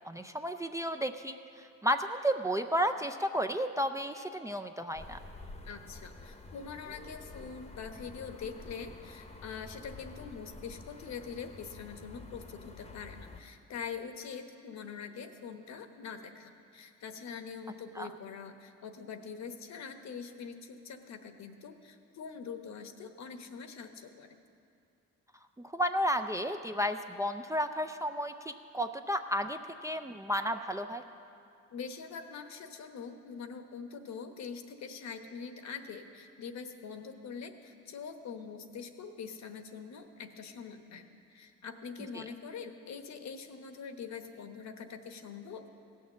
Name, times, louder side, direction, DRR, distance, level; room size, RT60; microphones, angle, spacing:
voice 1, 0.0-5.2 18.0-18.1 25.6-31.0 42.1-42.2, equal, 10° right, 6 dB, 0.4 m, -32 dB
sound 1, 5.0-13.4, left 3 dB, 20° left, 0.9 m, -49 dB
voice 2, 5.6-24.4 31.7-41.1 41.3-45.7, left 6 dB, 65° left, 7 dB, 1.0 m, -44 dB
16.5 x 6.5 x 7.1 m, 2.5 s
cardioid pair, 90°, 30 cm